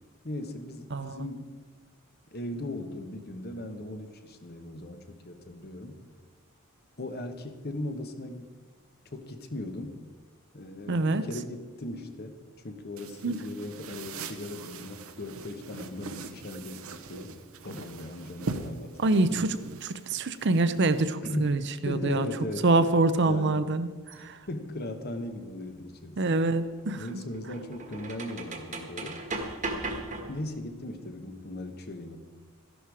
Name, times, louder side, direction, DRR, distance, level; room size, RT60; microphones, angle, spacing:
voice 1, 0.2-1.5 2.3-6.0 7.0-8.5 9.1-10.0 10.5-17.4 17.6-19.4 21.2-21.6 21.8-22.7 23.2-23.6 24.5-26.4 27.0-29.3 30.3-32.2, left 1 dB, 45° left, 7 dB, 1.1 m, -38 dB
voice 2, 10.9-11.2 13.2-13.4 19.0-22.3 22.6-24.4 26.2-27.0, right 2 dB, 50° right, 12 dB, 0.6 m, -26 dB
sound 1, 13.0-21.0, right 3 dB, 75° right, 0.9 m, -41 dB
sound 2, 24.1-24.2 26.5-30.6, right 2 dB, 35° right, 1.4 m, -37 dB
13.5 x 11.5 x 4.8 m, 1.4 s
head